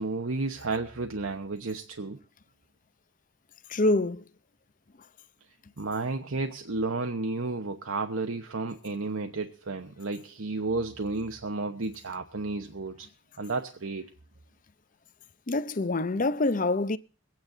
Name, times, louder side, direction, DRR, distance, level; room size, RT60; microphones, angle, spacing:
voice 1, 0.0-2.2 5.8-13.1 13.4-14.1, right 3 dB, 90° right, 1.1 m, -32 dB
voice 2, 3.7-4.2 15.5-17.0, left 2 dB, 40° left, 0.7 m, -25 dB
22.5 x 9.5 x 3.9 m
head